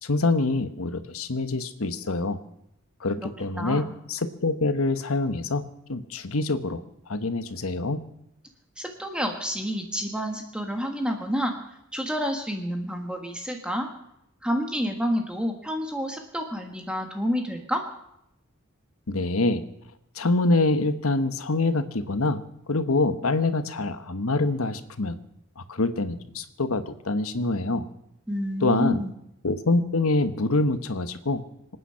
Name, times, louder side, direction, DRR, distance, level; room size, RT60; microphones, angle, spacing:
voice 1, 0.0-2.4 3.0-6.8 7.1-8.0 19.1-19.7 20.2-22.4 22.7-25.2 25.6-27.9 28.6-29.0 29.4-31.4, left 2 dB, 80° left, 10 dB, 1.2 m, -25 dB
voice 2, 3.6-3.9 8.8-13.9 14.4-17.8 28.3-29.1, equal, 5° right, 3 dB, 1.5 m, -29 dB
26.0 x 9.2 x 5.7 m, 0.80 s
head